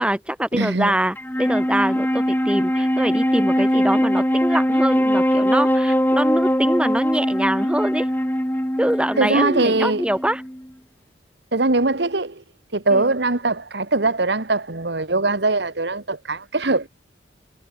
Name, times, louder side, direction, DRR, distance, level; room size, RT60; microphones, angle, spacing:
voice 1, 0.0-8.1 8.8-10.4 12.9-13.1, right 1 dB, 5° right, 1.2 m, -24 dB
voice 2, 0.5-1.0 9.2-10.0 11.5-12.4 12.7-16.9, right 2 dB, 60° right, 1.5 m, -21 dB
Wind instrument woodwind instrument, 1.2-10.7, equal, 10° left, 3.8 m, -21 dB
head